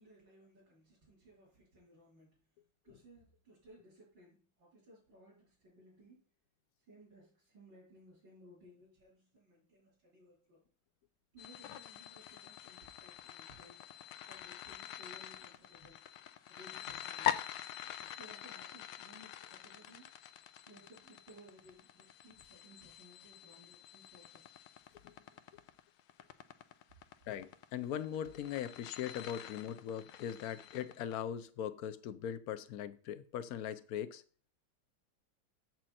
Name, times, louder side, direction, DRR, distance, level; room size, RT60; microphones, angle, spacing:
voice 1, 0.0-2.4 2.8-6.2 6.8-10.6 11.3-13.8 14.3-16.0 16.4-17.4 17.8-20.1 20.6-24.5, equal, 90° right, 4.6 m, -60 dB
sound 1, 11.4-31.1, left 11 dB, 80° left, 1.3 m, -45 dB
voice 2, 27.3-34.2, left 9 dB, 65° left, 1.0 m, -40 dB
7.8 x 7.4 x 4.2 m
omnidirectional pair, 2.0 m